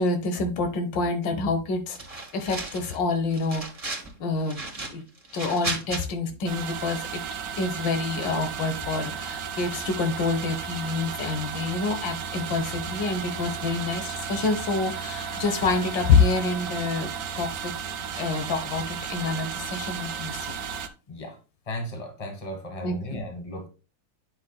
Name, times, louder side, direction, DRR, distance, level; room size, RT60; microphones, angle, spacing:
voice 1, 0.0-3.6 4.2-5.0 5.3-7.2 7.6-17.8 18.2-20.6 22.8-23.2, left 4 dB, 80° left, 1.9 m, -27 dB
sound 1, 2.0-3.0 3.3-4.1 4.5-6.0, right 2 dB, 20° right, 1.4 m, -34 dB
sound 2, 6.5-20.9, right 7 dB, 60° right, 1.1 m, -34 dB
voice 2, 21.1-21.4 21.7-23.7, left 1 dB, 20° left, 1.5 m, -35 dB
9.8 x 5.8 x 2.2 m
omnidirectional pair, 2.0 m